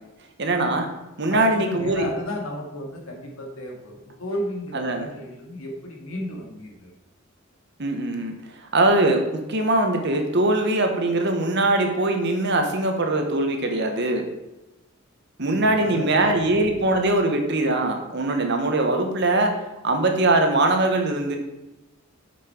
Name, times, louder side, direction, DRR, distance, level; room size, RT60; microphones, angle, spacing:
voice 1, 0.4-0.9 1.2-2.1 4.7-5.1 7.8-8.3 8.7-14.3 15.4-19.5 19.8-21.4, right 2 dB, 55° right, 5 dB, 1.3 m, -22 dB
voice 2, 1.3-6.9 15.5-16.4, left 1 dB, 80° left, 0 dB, 2.2 m, -33 dB
8.5 x 6.1 x 4.5 m, 0.99 s
head